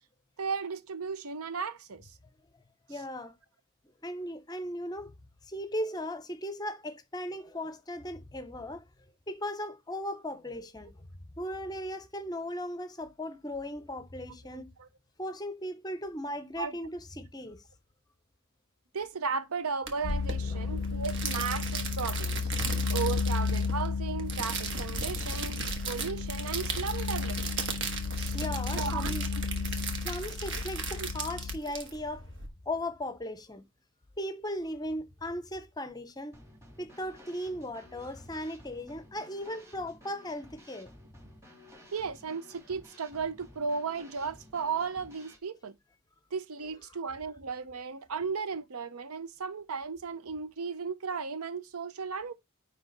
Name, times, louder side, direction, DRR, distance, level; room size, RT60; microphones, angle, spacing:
voice 1, 0.4-2.1 14.5-14.9 16.6-16.8 18.9-22.5 22.9-27.5 28.1-28.4 28.7-29.4 31.0-31.1 41.9-45.7 46.3-52.3, right 5 dB, 90° right, 0.7 m, -35 dB
voice 2, 2.9-3.3 4.0-5.1 5.4-8.9 9.3-10.9 11.4-14.7 15.2-17.6 20.5-20.8 28.3-29.3 29.7-32.3 32.7-33.6 34.2-36.4 36.8-40.9, left 1 dB, 20° left, 0.6 m, -37 dB
sound 1, 19.9-32.5, right 5 dB, 55° right, 1.4 m, -37 dB
sound 2, 20.0-31.6, left 4 dB, 60° left, 0.4 m, -33 dB
Drum kit / Snare drum, 36.3-45.4, left 1 dB, 15° right, 2.8 m, -54 dB
9.8 x 3.3 x 3.9 m
head